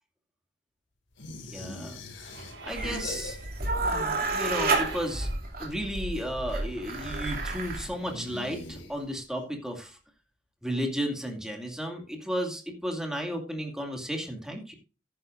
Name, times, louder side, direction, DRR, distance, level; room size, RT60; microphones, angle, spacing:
sound 1, 1.2-3.8 4.0-4.8 6.8-9.3, left 2 dB, 85° left, 2.4 m, -43 dB
voice 1, 1.5-2.0 2.6-3.4 3.7-5.3 5.6-10.0 10.6-14.7, equal, 5° right, 2 dB, 2.3 m, -33 dB
sound 2, 2.1-7.0, right 3 dB, 85° right, 5.1 m, -47 dB
sound 3, 2.7-7.9, right 3 dB, 50° right, 2.8 m, -30 dB
14.5 x 10.0 x 2.6 m, 0.34 s
head